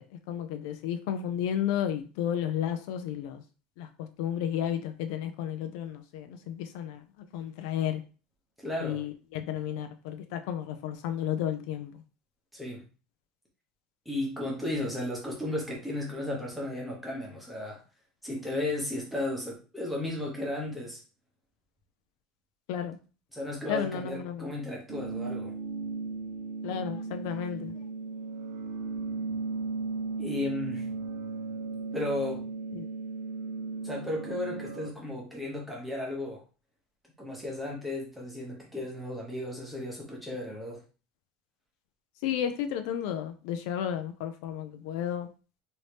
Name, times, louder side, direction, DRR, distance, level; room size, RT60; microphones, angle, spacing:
voice 1, 0.0-3.4 3.8-8.0 8.8-12.0 22.7-23.0 23.7-24.5 26.6-27.9 32.7-32.9 42.2-45.3, left 9 dB, 65° left, 7 dB, 0.4 m, -33 dB
voice 2, 8.6-9.0 12.5-12.9 14.1-17.8 18.2-21.0 23.3-25.6 30.2-30.9 31.9-32.4 33.8-36.4 37.2-40.8, left 1 dB, ahead, -3 dB, 0.8 m, -34 dB
sound 1, 24.9-34.9, right 4 dB, 75° right, 0.5 m, -36 dB
3.1 x 2.7 x 3.2 m, 0.35 s
cardioid pair, 180°, 2 cm